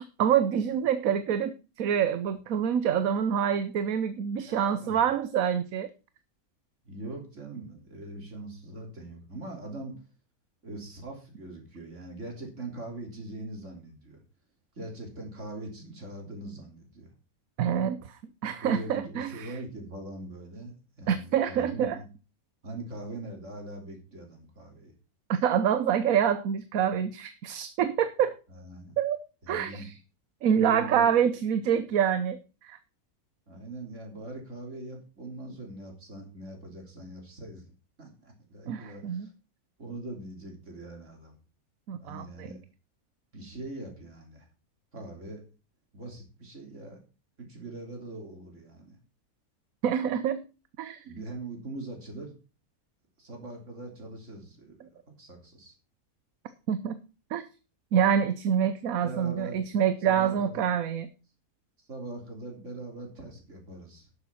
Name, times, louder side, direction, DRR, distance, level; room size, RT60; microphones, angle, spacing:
voice 1, 0.0-5.9 17.6-19.5 21.1-22.0 25.3-28.4 29.0-29.2 29.5-29.9 30.4-32.8 38.7-39.3 41.9-42.5 49.8-50.4 50.8-51.2 56.7-57.0 57.3-57.4 57.9-61.1, right 8 dB, 70° right, 12 dB, 1.2 m, -26 dB
voice 2, 4.5-5.0 6.9-10.0 10.6-14.2 14.8-17.1 18.6-22.1 22.6-24.9 28.5-28.9 29.4-29.9 30.5-31.1 33.5-37.7 38.0-39.3 39.8-41.4 42.0-42.6 43.3-44.5 44.9-45.4 45.9-47.0 47.4-49.0 51.0-52.3 53.2-55.7 59.0-59.6 60.0-60.7 61.9-64.1, right 2 dB, 55° right, 2 dB, 3.7 m, -42 dB
12.0 x 6.9 x 5.6 m, 0.33 s
omnidirectional pair, 1.5 m